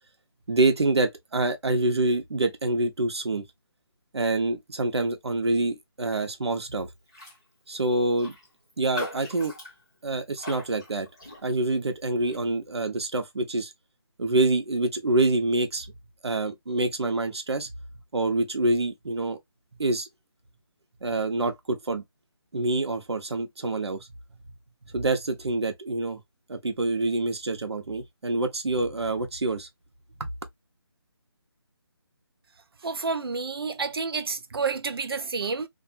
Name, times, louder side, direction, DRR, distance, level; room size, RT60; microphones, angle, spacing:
voice 1, 0.5-3.4 4.1-6.9 7.7-8.3 8.8-9.5 10.0-11.1 11.4-13.7 14.2-16.0 16.2-17.7 18.1-19.4 19.8-20.1 21.0-22.0 22.5-24.1 24.8-26.2 26.5-29.7, right 2 dB, 85° right, 1.0 m, -26 dB
Raindrop, 7.1-7.4 7.7-7.8 8.2-11.8 12.2-12.5, left 1 dB, 10° left, 0.6 m, -41 dB
voice 2, 32.8-35.7, right 4 dB, 60° right, 0.5 m, -29 dB
2.7 x 2.5 x 2.5 m
hypercardioid pair, 180°, 14 cm